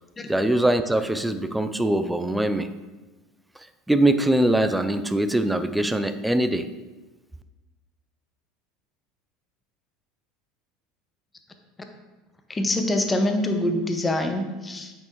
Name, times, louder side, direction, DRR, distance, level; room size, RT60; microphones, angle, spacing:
voice 1, 0.3-2.7 3.9-6.7, right 1 dB, 5° right, 10 dB, 0.5 m, -22 dB
voice 2, 12.5-15.0, left 1 dB, 20° left, 5 dB, 1.0 m, -25 dB
8.6 x 6.4 x 3.2 m, 1.2 s
hypercardioid pair, 75°, 0 cm